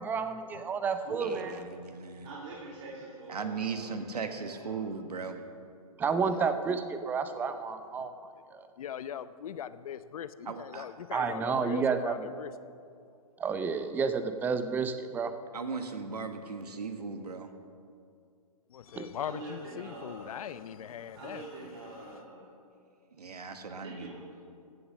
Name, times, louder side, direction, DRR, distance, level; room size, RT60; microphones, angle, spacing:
voice 1, 0.0-1.6 6.0-8.1 11.1-12.3 13.4-15.3 19.0-19.1, right 5 dB, 10° right, 0.5 m, -30 dB
voice 2, 1.1-2.3 3.3-5.4 10.4-10.9 15.5-17.5 23.2-24.2, right 5 dB, 85° right, 1.3 m, -38 dB
voice 3, 2.1-4.8 19.2-20.4 21.1-22.5 23.8-24.2, right 2 dB, 50° right, 2.4 m, -45 dB
voice 4, 8.8-12.5 18.7-21.5 21.8-22.2, left 9 dB, 65° left, 0.6 m, -41 dB
15.5 x 6.9 x 6.3 m
hypercardioid pair, 130°, 20 cm